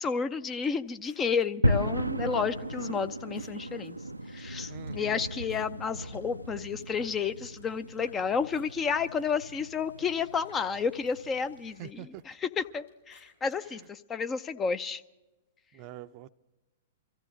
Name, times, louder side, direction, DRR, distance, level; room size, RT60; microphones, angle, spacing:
voice 1, 0.0-4.0 4.3-12.1 12.4-15.0, left 6 dB, 20° left, 11 dB, 0.6 m, -31 dB
sound 1, 0.6-6.3 6.6-8.2 8.5-13.9, left 4 dB, 75° left, 6.5 m, -64 dB
sound 2, 1.6-11.9, equal, 90° right, 0.5 m, -35 dB
voice 2, 4.7-5.2 11.8-12.2 13.7-13.8 15.7-16.3, right 11 dB, 40° right, 12 dB, 0.6 m, -45 dB
24.0 x 14.5 x 3.8 m, 1.0 s
figure-of-eight pair, 110°, 0 cm